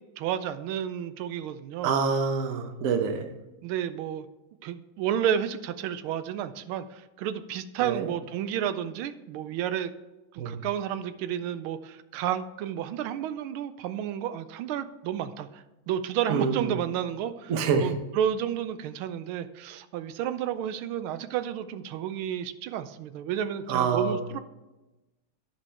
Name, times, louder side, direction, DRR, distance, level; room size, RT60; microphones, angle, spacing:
voice 1, 0.2-1.9 3.6-4.2 4.6-9.9 10.3-24.4, right 10 dB, 85° right, 12 dB, 1.4 m, -31 dB
voice 2, 1.8-3.3 7.8-8.1 10.4-10.6 16.3-16.7 17.5-17.9 23.7-24.2, right 5 dB, 55° right, 6 dB, 1.0 m, -26 dB
11.0 x 5.2 x 4.3 m, 1.0 s
omnidirectional pair, 2.3 m